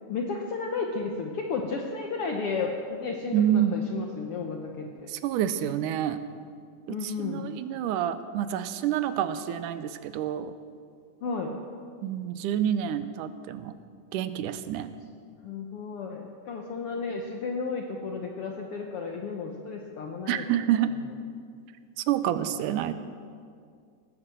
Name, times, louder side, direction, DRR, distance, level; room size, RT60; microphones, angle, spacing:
voice 1, 0.1-5.1 6.9-7.5 11.2-11.6 15.4-20.6 20.9-21.0, left 4 dB, 65° left, 2 dB, 1.6 m, -33 dB
voice 2, 3.3-4.0 5.1-6.2 6.9-10.5 12.0-13.7 14.1-14.9 20.3-20.9 22.0-22.9, right 10 dB, 85° right, 12 dB, 2.2 m, -28 dB
19.0 x 9.7 x 7.6 m, 2.2 s
omnidirectional pair, 3.7 m